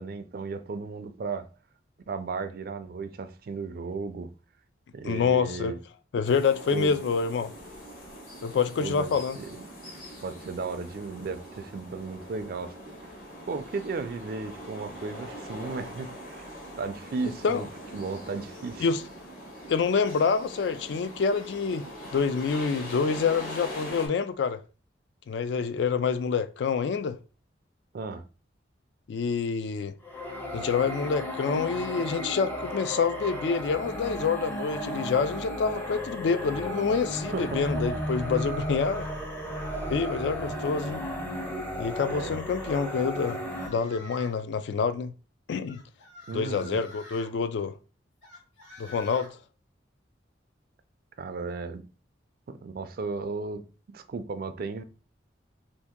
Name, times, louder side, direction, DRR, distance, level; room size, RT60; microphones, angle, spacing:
voice 1, 0.0-1.5 2.1-4.3 4.9-5.8 6.7-7.0 8.8-9.7 10.2-12.8 13.5-16.5 16.8-17.7 17.9-18.9 27.9-28.2 37.3-37.6 42.1-42.4 46.3-46.8 51.2-51.8 52.5-54.8, right 4 dB, 50° right, 0.3 m, -35 dB
voice 2, 5.0-5.7 6.1-7.5 8.4-9.4 17.4-17.7 18.8-19.0 19.7-24.6 25.3-27.2 29.1-29.9 30.5-39.1 39.9-41.0 41.8-43.4 43.7-45.1 45.5-45.8 46.3-47.7 48.8-49.3, left 5 dB, 65° left, 0.3 m, -27 dB
sound 1, 6.2-24.1, equal, 45° left, 1.0 m, -42 dB
sound 2, 30.0-43.7, equal, 10° left, 0.5 m, -34 dB
sound 3, 43.2-44.4 45.6-47.3 48.2-49.3, left 2 dB, 90° left, 1.5 m, -47 dB
2.7 x 2.6 x 3.5 m
head